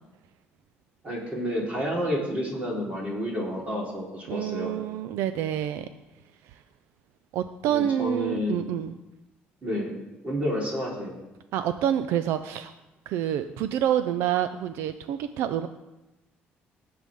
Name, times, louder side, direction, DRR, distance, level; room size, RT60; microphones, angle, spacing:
voice 1, 1.0-4.7 7.7-8.6 9.6-9.9 10.2-11.1, equal, 30° right, -3 dB, 4.0 m, -30 dB
voice 2, 4.3-5.9 6.5-6.6 7.3-9.0 11.5-12.7 13.1-15.7, right 10 dB, 85° right, 11 dB, 0.5 m, -27 dB
20.0 x 7.8 x 3.7 m, 1.0 s
cardioid pair, 120°, 4 cm